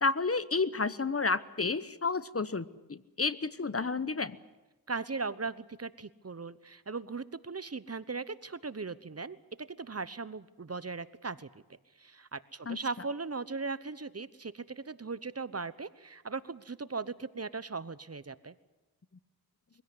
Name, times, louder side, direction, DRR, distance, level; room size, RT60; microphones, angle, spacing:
voice 1, 0.0-4.4 12.7-12.8, left 4 dB, 40° left, 16 dB, 1.0 m, -31 dB
voice 2, 4.9-9.4 9.7-11.5 12.0-18.5, right 4 dB, 40° right, 16 dB, 1.0 m, -38 dB
23.5 x 16.5 x 9.7 m, 1.1 s
cardioid pair, 45°, 37 cm